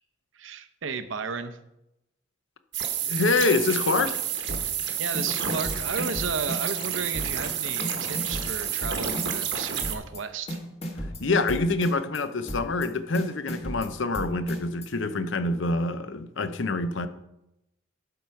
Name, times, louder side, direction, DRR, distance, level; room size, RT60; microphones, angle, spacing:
voice 1, 0.3-1.6 5.0-10.6, right 5 dB, 70° right, 0.7 m, -34 dB
sound 1, 2.7-10.0, right 8 dB, 55° right, 1.1 m, -30 dB
voice 2, 3.1-4.2 11.2-17.1, left 3 dB, 70° left, 0.7 m, -26 dB
sound 2, 4.5-4.9 5.1-6.9 7.1-7.5 7.8-9.5 9.8-10.2 10.5-12.2 12.5-12.9 13.1-14.9, equal, 30° left, 1.4 m, -34 dB
11.5 x 4.6 x 5.7 m
head